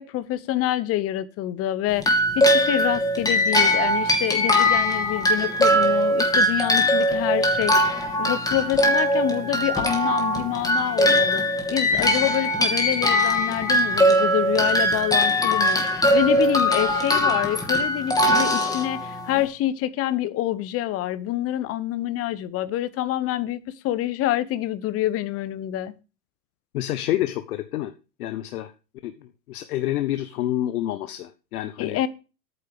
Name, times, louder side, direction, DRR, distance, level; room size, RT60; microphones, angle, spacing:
voice 1, 0.0-11.4 11.7-25.9 31.8-32.1, left 13 dB, 30° left, 0.9 m, -27 dB
sound 1, 2.0-19.4, equal, 5° left, 2.6 m, -21 dB
voice 2, 26.7-27.9 28.2-28.7 29.0-29.1 29.5-32.1, left 13 dB, 60° left, 1.1 m, -28 dB
9.2 x 6.5 x 6.7 m
hypercardioid pair, 110°, 50 cm